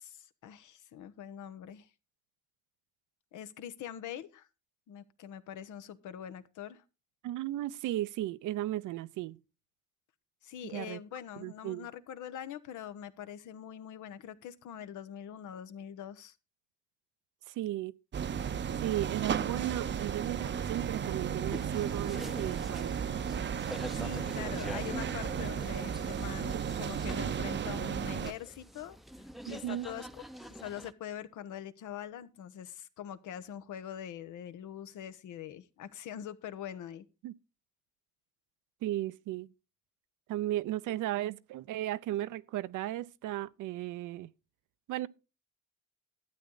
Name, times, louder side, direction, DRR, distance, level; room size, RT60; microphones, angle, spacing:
voice 1, 0.0-1.9 3.3-4.5 4.9-6.8 10.4-16.3 23.9-29.0 29.5-30.1 30.5-37.0, left 10 dB, 80° left, 1.0 m, -43 dB
voice 2, 7.2-9.4 10.6-11.0 11.4-11.9 17.5-17.9 18.8-23.0 25.4-25.5 29.5-29.9 37.2-37.3 38.8-39.5 40.3-44.3 44.9-45.1, right 14 dB, 85° right, 0.6 m, -35 dB
sound 1, 18.1-28.3, right 8 dB, 40° right, 0.6 m, -34 dB
sound 2, 21.4-30.9, right 1 dB, ahead, 0.6 m, -46 dB
12.5 x 8.6 x 3.9 m
cardioid pair, 90°, 30 cm